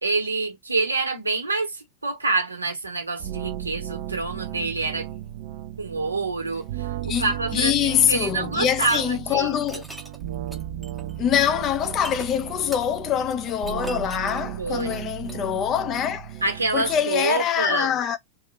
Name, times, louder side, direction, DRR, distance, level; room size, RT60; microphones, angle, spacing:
voice 1, 0.0-5.1 5.8-9.8 14.6-15.0 16.4-18.0, right 3 dB, 80° right, 1.1 m, -27 dB
sound 1, 3.2-17.0, right 12 dB, 50° right, 0.4 m, -35 dB
voice 2, 7.0-9.8 11.2-16.4 16.7-18.2, left 9 dB, 30° left, 0.5 m, -24 dB
sound 2, 8.5-9.0 9.6-15.4, right 1 dB, 5° right, 0.7 m, -41 dB
2.9 x 2.4 x 4.1 m
figure-of-eight pair, 90°, 0 cm